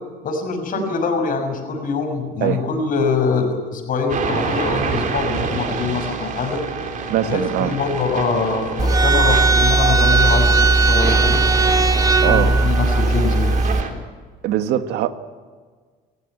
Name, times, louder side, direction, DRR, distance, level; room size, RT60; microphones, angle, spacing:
voice 1, 0.2-6.6 7.2-11.4 12.1-13.5, left 4 dB, 55° left, 5 dB, 6.2 m, -23 dB
sound 1, 4.1-13.9, right 5 dB, 50° right, 3.9 m, -28 dB
voice 2, 7.1-7.7 12.2-12.5 14.4-15.1, right 11 dB, 80° right, 10 dB, 1.5 m, -21 dB
sound 2, 8.8-13.8, right 3 dB, 20° right, 2.2 m, -16 dB
28.0 x 15.0 x 9.5 m, 1.5 s
cardioid pair, 110°, 17 cm